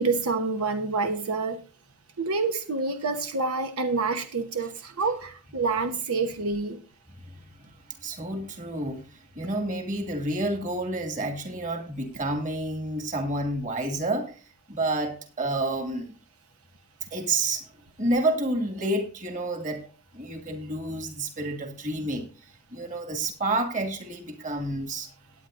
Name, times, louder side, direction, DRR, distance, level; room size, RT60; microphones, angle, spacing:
voice 1, 0.0-1.6 2.2-6.8, right 4 dB, 90° right, 1.1 m, -27 dB
voice 2, 8.0-14.3 14.7-16.1 17.1-17.6 18.0-25.1, right 2 dB, 35° right, 2.3 m, -29 dB
17.5 x 9.3 x 2.6 m
head